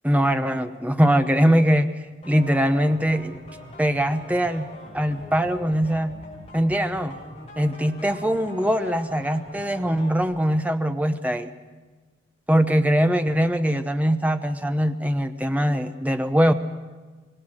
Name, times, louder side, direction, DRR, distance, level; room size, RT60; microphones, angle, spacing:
voice 1, 0.0-1.9 2.2-3.4 3.8-4.7 4.9-6.2 6.5-7.2 7.6-11.5 12.5-16.5, equal, 5° right, 8 dB, 0.8 m, -22 dB
sound 1, 2.2-10.2, left 1 dB, 30° left, 6.3 m, -43 dB
25.5 x 19.5 x 6.4 m, 1.3 s
head